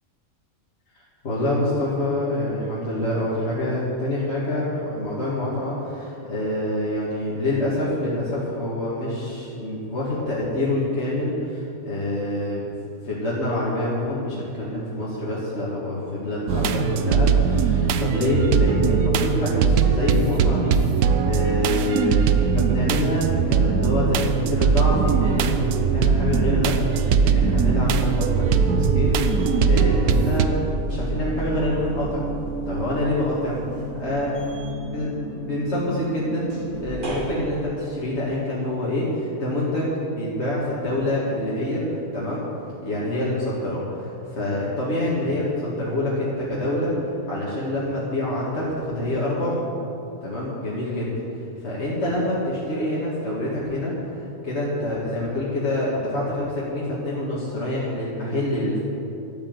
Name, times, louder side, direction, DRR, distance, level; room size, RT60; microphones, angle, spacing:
voice 1, 0.9-12.7 13.0-30.6 30.8-32.2 32.7-33.6 34.0-34.4 34.8-42.4 42.8-46.9 47.3-49.7 50.2-51.1 51.6-53.9 54.2-58.9, left 1 dB, 50° left, -7 dB, 2.4 m, -26 dB
sound 1, 16.5-30.5, right 6 dB, 85° right, 1.2 m, -21 dB
sound 2, 20.9-21.1 21.4-37.3, right 2 dB, 35° right, 1.8 m, -30 dB
12.0 x 9.0 x 8.0 m, 2.7 s
omnidirectional pair, 1.5 m